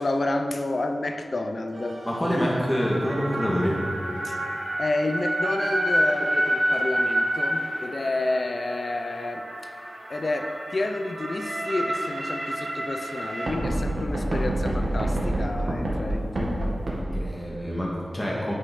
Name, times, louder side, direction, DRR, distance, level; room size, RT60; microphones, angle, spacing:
voice 1, 0.0-2.0 4.2-4.4 4.8-9.5 10.1-16.8, left 2 dB, 55° left, 6 dB, 0.7 m, -29 dB
sound 1, 1.7-17.0, right 1 dB, 70° right, 2.2 m, -28 dB
voice 2, 2.1-3.8 17.1-18.5, equal, 15° left, -4 dB, 2.0 m, -26 dB
9.3 x 8.0 x 5.5 m, 2.4 s
wide cardioid pair, 100°, 0 cm